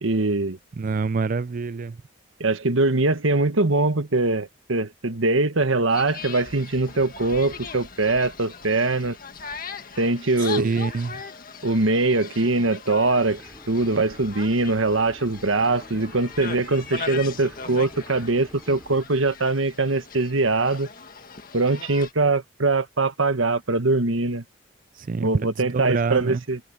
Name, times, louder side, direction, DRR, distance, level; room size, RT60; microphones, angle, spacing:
voice 1, 0.0-0.6 2.4-9.2 10.0-10.7 11.6-13.4 13.7-20.9 21.5-24.4 25.2-26.6, right 2 dB, 85° right, 1.4 m, -22 dB
voice 2, 0.8-2.0 10.6-11.1 24.9-26.4, right 4 dB, 45° right, 0.4 m, -26 dB
sound 1, 5.9-22.1, left 5 dB, 45° left, 1.8 m, -39 dB
sound 2, 13.2-19.0, equal, 10° right, 4.1 m, -49 dB
head